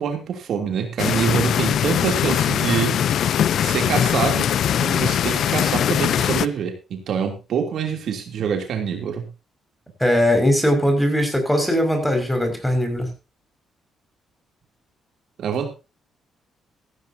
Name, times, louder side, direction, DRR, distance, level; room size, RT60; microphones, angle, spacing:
voice 1, 0.0-3.1 3.6-4.5 4.8-9.3 15.4-15.7, right 7 dB, 70° right, 4 dB, 3.0 m, -25 dB
sound 1, 1.0-6.5, left 9 dB, 70° left, 0.6 m, -21 dB
voice 2, 10.0-13.1, equal, 5° left, 5 dB, 5.9 m, -20 dB
16.0 x 14.0 x 2.8 m, 0.29 s
cardioid pair, 90°, 0 cm